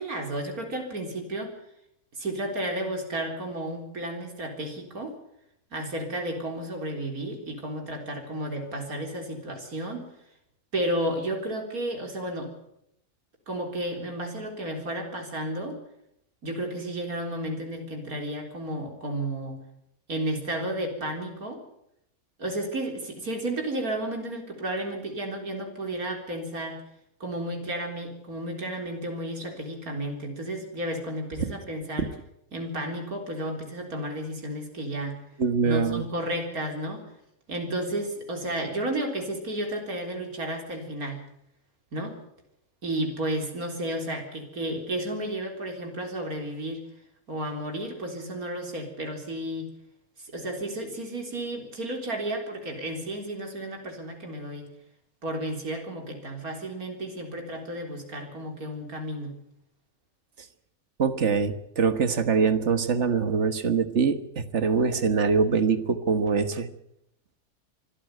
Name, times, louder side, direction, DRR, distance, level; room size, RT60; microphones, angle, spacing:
voice 1, 0.0-1.5 2.2-5.2 5.7-10.1 10.7-12.5 13.5-15.8 16.4-19.6 20.1-21.6 22.4-26.8 27.2-32.1 32.5-35.2 35.6-37.0 37.5-41.2 41.9-42.2 42.8-46.8 47.3-49.7 50.2-54.7 55.2-59.4, right 1 dB, 90° right, 3 dB, 4.3 m, -32 dB
voice 2, 35.4-36.0 61.0-66.7, right 5 dB, 55° right, 12 dB, 1.7 m, -24 dB
24.5 x 13.5 x 9.2 m, 0.77 s
omnidirectional pair, 1.5 m